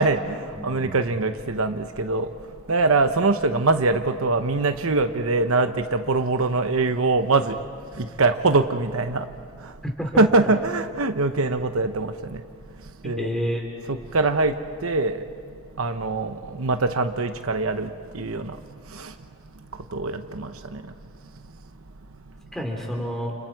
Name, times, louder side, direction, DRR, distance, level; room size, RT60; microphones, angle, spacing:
voice 1, 0.0-2.3 2.7-7.5 8.0-9.3 10.2-12.1 13.0-13.3 13.9-14.5 14.8-15.2 15.8-17.9 18.1-18.6 19.0-19.1 19.9-20.8, right 3 dB, 70° right, 8 dB, 1.0 m, -23 dB
voice 2, 0.5-1.0 9.8-10.1 13.0-13.6 22.5-23.4, equal, ahead, 0 dB, 3.4 m, -29 dB
30.0 x 29.5 x 4.8 m, 2.1 s
head